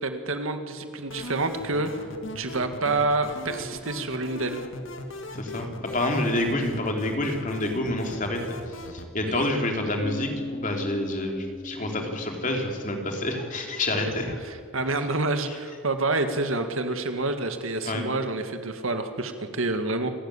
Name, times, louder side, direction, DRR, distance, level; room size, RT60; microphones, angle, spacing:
voice 1, 0.0-1.9 2.4-4.6 9.3-9.5 14.5-20.1, right 2 dB, 70° right, 7 dB, 2.0 m, -28 dB
sound 1, 1.1-9.1, left 1 dB, 60° left, 2.1 m, -39 dB
voice 2, 5.3-8.4 8.7-14.3 15.5-15.6 17.8-18.0, left 1 dB, 35° left, 2 dB, 3.3 m, -28 dB
Bass guitar, 10.0-13.9, left 2 dB, 20° left, 1.0 m, -39 dB
28.0 x 13.0 x 10.0 m, 2.1 s
head